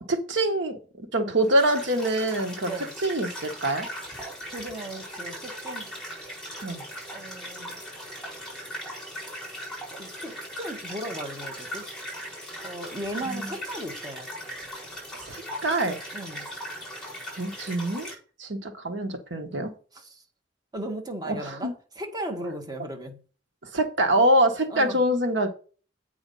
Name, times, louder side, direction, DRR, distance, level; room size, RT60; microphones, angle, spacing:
voice 1, 0.1-2.7 3.0-3.9 6.6-6.8 13.3-13.5 15.2-16.0 17.4-18.1 18.4-19.7 21.2-21.7 23.7-25.5, right 1 dB, 85° right, 1.4 m, -25 dB
sound 1, 1.4-18.1, equal, 5° left, 4.5 m, -39 dB
voice 2, 4.5-5.9 7.1-7.8 10.0-11.9 12.6-14.3 16.1-16.5 19.9-20.2 20.7-23.2 24.7-25.0, right 1 dB, 20° right, 1.4 m, -36 dB
8.4 x 4.9 x 5.4 m
head